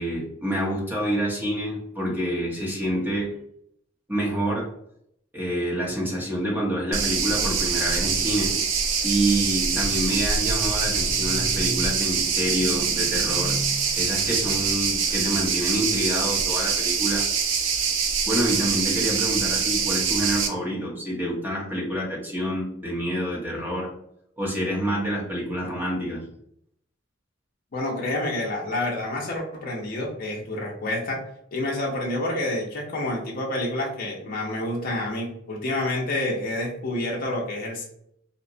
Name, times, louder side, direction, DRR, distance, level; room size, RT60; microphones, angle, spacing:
voice 1, 0.0-3.4 4.1-4.7 5.3-8.6 9.0-17.3 18.3-23.9 24.4-26.3, equal, 10° right, -3 dB, 0.8 m, -27 dB
sound 1, 6.9-20.5, right 6 dB, 85° right, 0.4 m, -24 dB
voice 2, 27.7-31.2 31.5-37.8, left 1 dB, 50° left, -2 dB, 0.5 m, -28 dB
2.8 x 2.1 x 2.6 m, 0.71 s
head